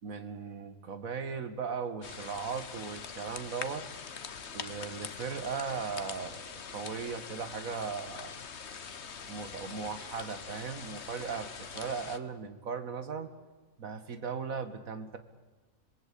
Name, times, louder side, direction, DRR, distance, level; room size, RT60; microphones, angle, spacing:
voice 1, 0.0-3.9 4.5-8.4 9.3-13.3 13.8-15.2, right 5 dB, 70° right, 10 dB, 2.1 m, -38 dB
sound 1, 2.0-12.2, left 6 dB, 50° left, 1.4 m, -43 dB
27.5 x 20.5 x 8.5 m, 1.2 s
omnidirectional pair, 1.5 m